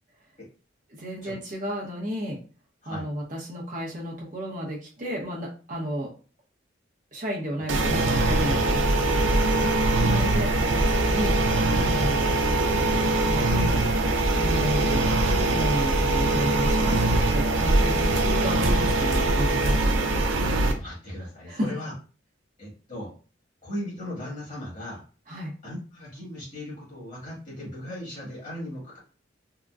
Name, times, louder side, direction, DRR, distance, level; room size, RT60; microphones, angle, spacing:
voice 1, 0.9-2.4 2.9-6.1 7.1-9.1 10.1-11.3 11.7-12.4 13.2-13.8 14.3-15.1 15.5-19.8 21.4-21.7 25.3-25.5, equal, 45° right, -2 dB, 0.8 m, -32 dB
sound 1, 7.7-20.7, right 2 dB, 90° right, 0.5 m, -22 dB
voice 2, 20.4-21.9 22.6-23.1 23.6-25.0 25.6-29.0, left 1 dB, 45° left, -5 dB, 1.6 m, -38 dB
3.7 x 2.1 x 2.3 m, 0.36 s
head